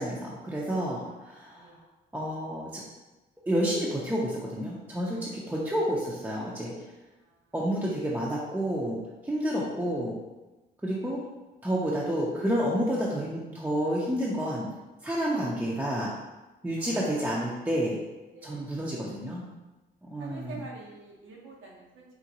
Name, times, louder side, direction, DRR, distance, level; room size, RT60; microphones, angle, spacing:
voice 1, 0.0-1.7 2.1-2.8 3.5-6.7 7.5-10.2 10.8-11.2 11.6-14.7 15.0-16.1 16.6-18.0 18.4-19.4 20.0-20.5, equal, 10° right, -5 dB, 0.5 m, -29 dB
voice 2, 0.9-1.3 1.5-1.8 7.2-7.5 16.8-17.4 18.3-18.9 20.2-22.0, right 3 dB, 75° right, -2 dB, 0.9 m, -47 dB
3.7 x 2.2 x 2.8 m, 1.1 s
cardioid pair, 90°, 20 cm